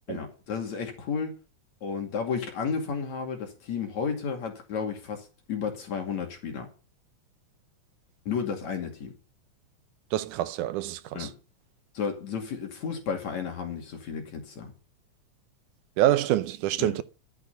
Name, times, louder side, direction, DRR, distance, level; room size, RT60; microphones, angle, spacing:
voice 1, 0.1-1.4 1.8-6.7 8.3-9.1 11.1-11.3 11.9-14.7 16.8-16.9, left 6 dB, 65° left, 3.7 m, -32 dB
voice 2, 10.1-11.3 16.0-17.0, right 13 dB, 90° right, 2.3 m, -26 dB
12.5 x 8.8 x 5.6 m
omnidirectional pair, 3.5 m